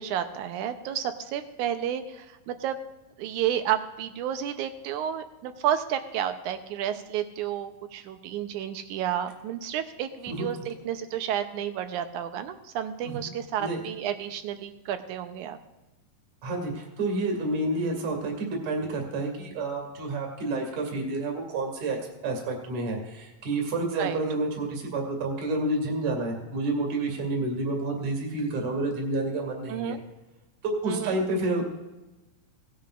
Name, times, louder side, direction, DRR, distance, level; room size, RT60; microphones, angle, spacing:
voice 1, 0.0-2.8 3.2-15.6 24.0-24.2 29.7-30.0 30.8-31.2, right 10 dB, 75° right, 8 dB, 2.0 m, -31 dB
voice 2, 16.4-22.0 22.2-30.0 30.6-31.6, right 2 dB, 60° right, 1 dB, 3.4 m, -29 dB
18.0 x 10.5 x 2.5 m, 1.1 s
omnidirectional pair, 3.9 m